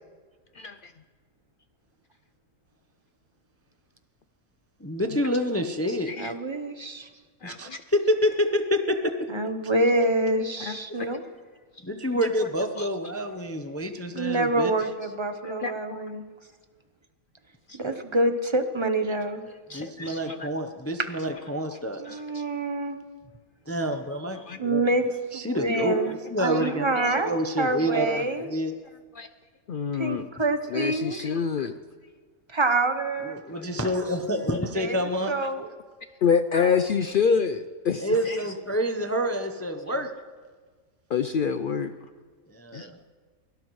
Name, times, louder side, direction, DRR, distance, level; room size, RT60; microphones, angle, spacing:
voice 1, 0.5-0.9 5.0-5.3 5.9-6.4 7.4-7.8 10.6-11.2 12.1-13.3 14.8-15.1 15.4-16.1 17.7-17.8 19.5-20.5 21.3-21.8 22.0-22.4 24.3-24.6 25.7-26.1 26.4-27.2 27.8-28.2 29.1-29.3 29.7-30.3 30.7-31.8 33.5-33.9 35.4-35.5 36.2-38.6 39.9-40.1 41.1-41.9 42.7-42.9, left 6 dB, 80° left, 10 dB, 0.4 m, -29 dB
voice 2, 4.8-6.1 7.4-9.3 11.8-14.7 19.7-22.2 23.7-24.9 25.3-28.7 30.2-30.3 33.2-35.4 38.0-40.1 42.5-43.0, equal, 15° left, 6 dB, 0.5 m, -28 dB
voice 3, 6.2-7.1 9.3-11.2 14.1-16.2 17.7-19.4 22.0-23.0 24.6-25.1 25.3-26.1 26.4-28.5 29.9-31.2 32.5-33.4 34.7-35.0 35.3-35.7, right 2 dB, 25° right, 7 dB, 0.7 m, -26 dB
23.5 x 17.5 x 3.2 m, 1.5 s
omnidirectional pair, 1.5 m